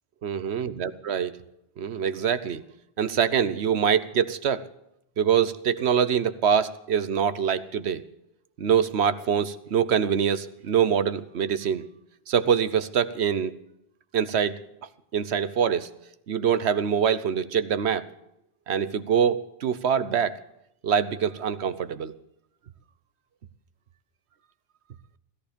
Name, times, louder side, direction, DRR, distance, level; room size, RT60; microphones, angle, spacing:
voice 1, 0.2-1.4 1.8-2.6 3.0-4.6 5.2-8.0 8.6-11.8 12.3-13.5 14.1-14.6 15.1-15.9 16.3-18.1 18.7-20.4 20.8-22.1, right 8 dB, 75° right, 13 dB, 1.1 m, -24 dB
16.5 x 14.0 x 5.2 m, 0.80 s
omnidirectional pair, 1.1 m